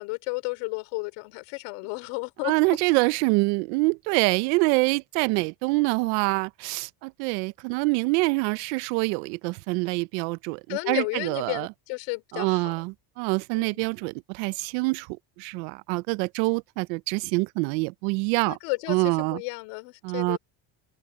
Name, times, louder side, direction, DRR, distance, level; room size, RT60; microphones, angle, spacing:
voice 1, 0.0-2.8 10.7-12.8 13.6-13.9 18.4-20.4, left 28 dB, 80° left, 3.4 m, -33 dB
voice 2, 2.4-11.7 12.3-15.1 15.4-18.6 18.9-19.4 20.0-20.4, right 27 dB, 85° right, 0.8 m, -25 dB
supercardioid pair, 90°, 50 cm